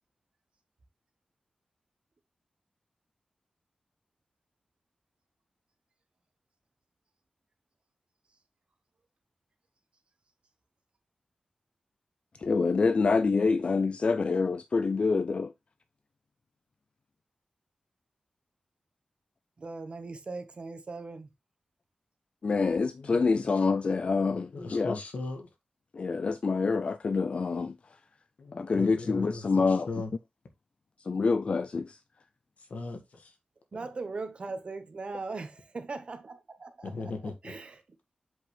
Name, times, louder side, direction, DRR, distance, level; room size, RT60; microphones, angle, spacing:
voice 1, 12.4-15.5 22.4-25.0 25.9-27.7 28.5-29.9 31.1-32.0, left 4 dB, 45° left, 0.4 m, -26 dB
voice 2, 19.6-21.3 33.7-37.8, right 3 dB, 45° right, 1.3 m, -39 dB
voice 3, 24.5-25.5 28.4-30.1 32.7-33.3 33.8-33.9 36.8-37.5, left 3 dB, 65° left, 1.9 m, -38 dB
7.7 x 5.6 x 3.3 m
wide cardioid pair, 150°, 3 cm